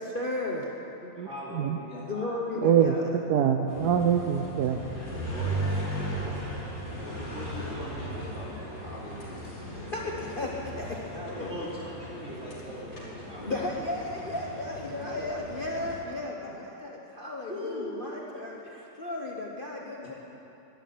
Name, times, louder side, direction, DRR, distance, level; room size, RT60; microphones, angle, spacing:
voice 1, 0.0-0.7 1.0-1.2 2.1-3.0 9.9-11.6 13.5-20.1, left 2 dB, 35° left, -2 dB, 1.0 m, -35 dB
voice 2, 1.2-2.3 3.2-3.5 5.1-9.8 11.4-13.7 14.8-15.2 16.4-16.5 17.5-18.2, equal, 40° right, -7 dB, 3.2 m, -41 dB
voice 3, 2.6-4.8, right 8 dB, 70° right, 4 dB, 1.1 m, -24 dB
sound 1, 3.7-16.0, right 1 dB, 85° left, 4.2 m, -37 dB
12.0 x 11.0 x 9.5 m, 3.0 s
omnidirectional pair, 2.0 m